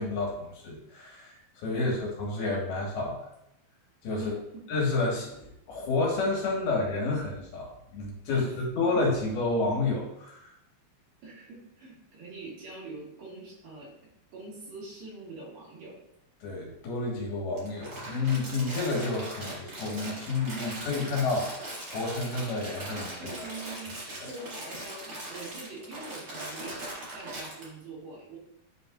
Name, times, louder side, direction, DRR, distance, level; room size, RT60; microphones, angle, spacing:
voice 1, 0.0-3.3 4.0-4.3 4.7-10.5 16.4-21.5 21.8-23.5 24.2-24.3, left 3 dB, 70° left, -2 dB, 3.2 m, -30 dB
voice 2, 8.3-8.9 11.2-13.9 14.3-16.0 23.2-23.9 24.2-28.4, right 2 dB, 65° right, -6 dB, 3.4 m, -44 dB
Crumpling crinkling, 17.6-27.6, right 1 dB, 40° right, 1.4 m, -40 dB
10.5 x 5.2 x 2.4 m, 0.79 s
omnidirectional pair, 4.8 m